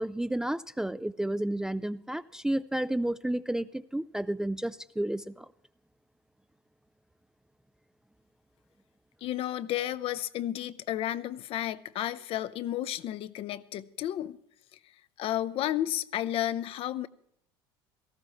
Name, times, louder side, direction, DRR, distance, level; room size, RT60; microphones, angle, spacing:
voice 1, 0.0-5.5, right 1 dB, 5° right, 0.4 m, -31 dB
voice 2, 9.2-14.4 15.2-17.1, left 12 dB, 50° left, 0.7 m, -32 dB
18.0 x 14.5 x 3.1 m
hypercardioid pair, 70°, 12 cm